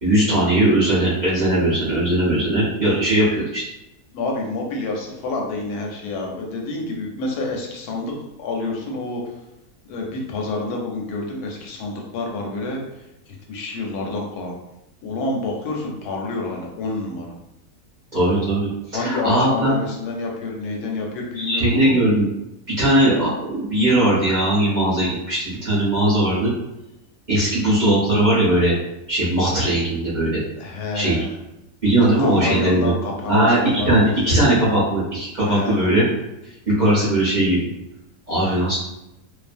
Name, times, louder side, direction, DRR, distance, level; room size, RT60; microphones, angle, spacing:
voice 1, 0.0-3.6 18.1-19.7 21.4-22.3 22.8-26.5 27.3-28.7 29.1-30.4 30.9-31.2 31.8-32.9 33.3-33.6 33.8-36.1 36.7-37.6 38.3-38.7, right 1 dB, 40° right, -9 dB, 0.8 m, -19 dB
voice 2, 4.1-8.1 8.4-9.3 9.9-13.1 13.5-14.5 15.0-17.3 18.9-22.0 30.6-31.4 32.0-34.5 35.4-35.9, left 2 dB, 85° left, 0 dB, 1.2 m, -28 dB
2.6 x 2.3 x 2.5 m, 0.91 s
omnidirectional pair, 1.6 m